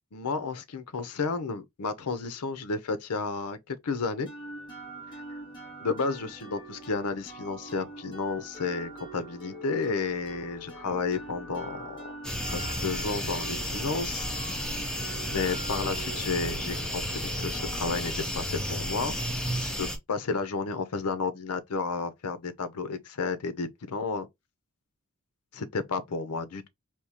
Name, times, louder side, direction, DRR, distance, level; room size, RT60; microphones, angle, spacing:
voice 1, 0.1-4.3 5.8-12.1 12.5-14.3 14.8-19.2 19.6-24.3 25.5-26.7, left 4 dB, 85° left, 0.7 m, -32 dB
sound 1, 4.3-19.9, right 2 dB, 20° left, 1.9 m, -44 dB
sound 2, 12.2-20.0, equal, 5° left, 0.6 m, -32 dB
3.6 x 2.7 x 2.9 m
head